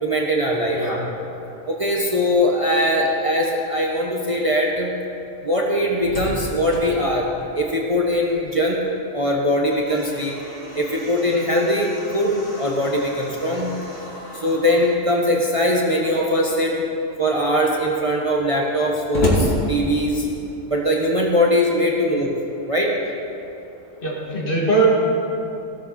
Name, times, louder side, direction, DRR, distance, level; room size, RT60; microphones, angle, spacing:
voice 1, 0.0-0.8 1.7-4.9 5.4-7.3 7.5-8.8 9.1-10.3 10.7-13.7 14.3-16.8 17.2-20.3 20.7-22.3 22.7-22.9, equal, 30° right, -2 dB, 1.2 m, -21 dB
Slam, 5.8-8.5 8.8-8.9 9.4-15.0 15.9-16.5 17.0-17.1 17.3-20.4, left 1 dB, 75° left, 2.8 m, -31 dB
voice 2, 24.0-24.9, right 3 dB, 45° left, -4 dB, 2.6 m, -21 dB
17.0 x 12.5 x 4.3 m, 2.8 s
omnidirectional pair, 1.3 m